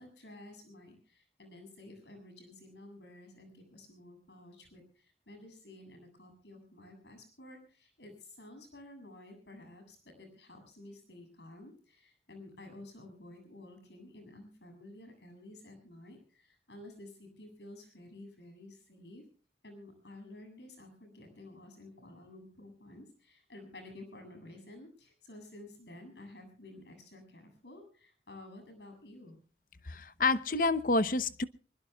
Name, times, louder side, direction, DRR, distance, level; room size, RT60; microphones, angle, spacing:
voice 1, 0.0-19.2 19.6-29.4, left 1 dB, 75° left, 6 dB, 7.9 m, -52 dB
voice 2, 29.9-31.5, left 3 dB, 50° left, 14 dB, 0.9 m, -28 dB
24.5 x 21.5 x 2.3 m, 0.40 s
head